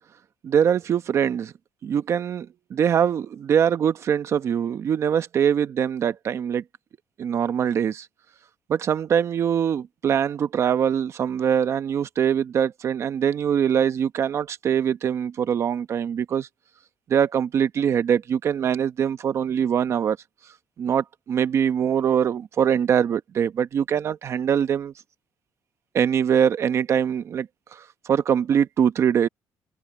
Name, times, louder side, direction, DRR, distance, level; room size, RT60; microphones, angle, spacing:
voice 1, 0.4-1.5 1.8-6.6 7.2-8.1 8.7-16.5 17.1-20.2 20.8-24.9 25.9-29.3, right 8 dB, 45° right, 0.9 m, -23 dB
cardioid pair, 135°, 6 cm